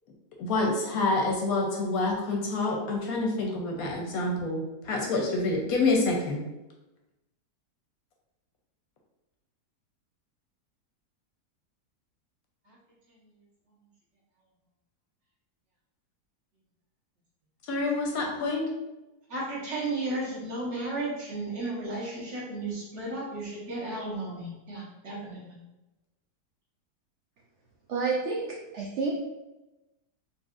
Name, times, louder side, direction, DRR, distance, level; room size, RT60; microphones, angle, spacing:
voice 1, 0.4-6.4 17.7-18.7, left 2 dB, 70° left, 0 dB, 1.0 m, -27 dB
voice 2, 19.3-25.6, right 2 dB, 50° right, -6 dB, 1.3 m, -34 dB
voice 3, 27.9-29.1, right 4 dB, 80° right, -2 dB, 0.6 m, -29 dB
4.1 x 2.6 x 2.4 m, 1.0 s
omnidirectional pair, 1.7 m